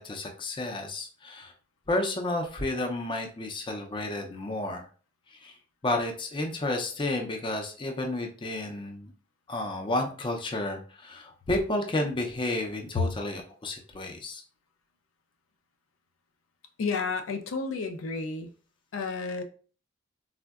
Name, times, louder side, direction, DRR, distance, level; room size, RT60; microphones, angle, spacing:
voice 1, 0.0-1.5 1.9-4.9 5.3-5.5 5.8-9.1 9.5-14.4, left 2 dB, 25° left, 3 dB, 0.4 m, -31 dB
voice 2, 16.8-18.5 18.9-19.4, left 4 dB, 85° left, 6 dB, 0.4 m, -30 dB
3.5 x 2.1 x 2.3 m, 0.39 s
head